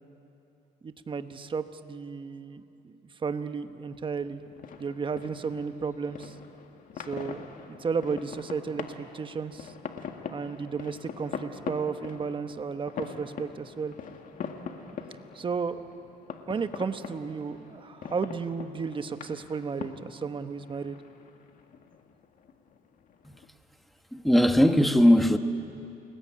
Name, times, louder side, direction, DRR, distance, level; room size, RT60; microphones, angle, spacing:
voice 1, 0.8-2.9 3.2-4.4 4.8-6.3 7.0-9.7 10.3-13.9 15.3-15.8 16.5-21.0, right 5 dB, 30° right, 1.2 m, -33 dB
sound 1, 4.2-23.5, left 6 dB, 55° left, 2.0 m, -43 dB
voice 2, 24.1-25.4, equal, ahead, 1.3 m, -19 dB
29.5 x 21.0 x 8.8 m
cardioid pair, 110°, 17 cm